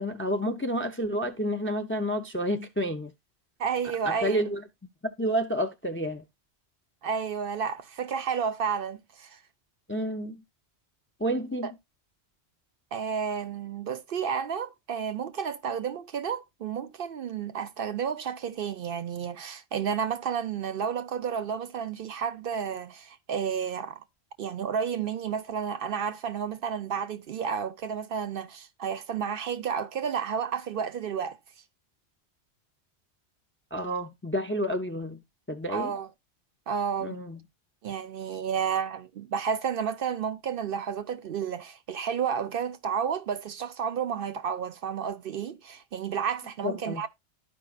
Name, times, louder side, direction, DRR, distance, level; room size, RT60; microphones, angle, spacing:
voice 1, 0.0-3.1 4.1-4.6 5.0-6.2 9.9-10.4 11.2-11.7 33.7-35.9 37.0-37.4 46.6-47.0, equal, 15° left, 0.4 m, -30 dB
voice 2, 3.6-4.4 7.0-9.4 11.6-11.7 12.9-24.0 24.4-31.4 35.7-36.1 36.7-37.2 37.8-47.1, right 7 dB, 65° right, 0.7 m, -31 dB
12.5 x 4.9 x 2.3 m
omnidirectional pair, 1.1 m